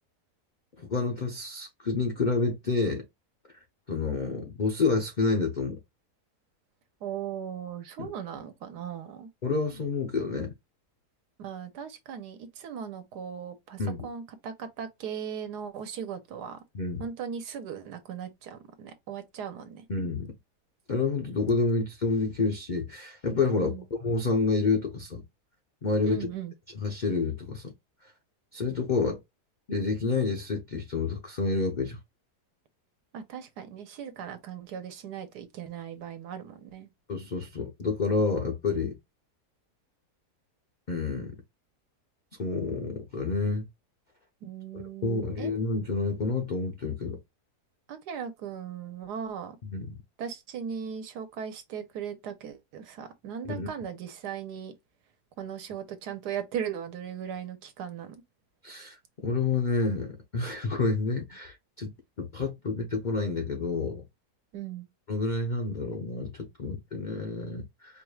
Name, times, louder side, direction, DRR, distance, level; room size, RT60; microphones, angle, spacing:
voice 1, 0.8-3.0 3.9-5.8 8.0-8.1 9.4-10.5 13.8-14.0 16.7-17.1 19.9-20.3 20.9-23.8 24.0-25.2 25.8-26.3 26.8-27.7 28.5-29.2 29.7-32.0 37.1-39.0 40.9-41.4 42.4-43.7 45.0-47.2 49.6-50.0 53.5-53.7 58.6-59.0 59.2-61.9 62.2-64.0 65.1-68.0, left 4 dB, 60° left, 0.4 m, -29 dB
voice 2, 7.0-9.3 11.4-16.6 17.0-19.8 23.6-23.8 26.0-26.5 33.1-36.9 44.4-45.5 47.9-49.6 50.2-54.7 55.4-58.2 64.5-64.9, right 8 dB, 80° right, 1.4 m, -38 dB
4.6 x 2.3 x 3.1 m
omnidirectional pair, 1.7 m